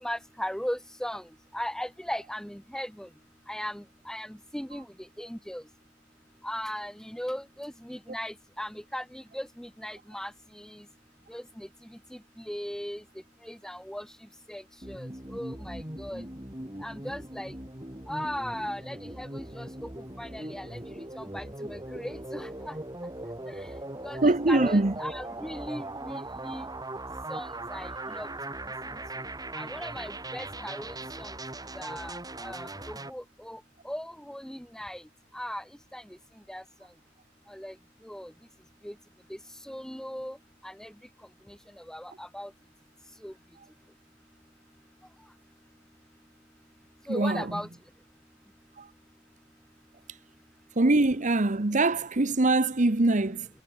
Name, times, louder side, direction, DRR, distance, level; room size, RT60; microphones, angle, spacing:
voice 1, 0.0-1.3 1.5-3.1 3.5-4.9 5.2-5.6 6.4-10.8 11.3-11.7 12.4-13.0 13.4-14.1 14.5-16.2 16.8-17.5 18.1-19.9 20.2-22.7 23.5-23.7 24.0-26.6 27.3-28.3 29.5-31.3 31.7-35.0 35.3-35.6 35.9-36.0 36.5-36.6 37.5-37.7 38.0-38.3 38.8-38.9 39.6-40.4 40.6-40.9 41.8-42.5 43.2-43.3 47.1-47.7, equal, 5° left, 1.1 m, -38 dB
sound 1, 14.8-33.1, right 2 dB, 20° right, 4.5 m, -39 dB
voice 2, 24.2-24.9 47.1-47.5 48.8-48.9 50.8-53.5, right 2 dB, 35° right, 1.0 m, -23 dB
head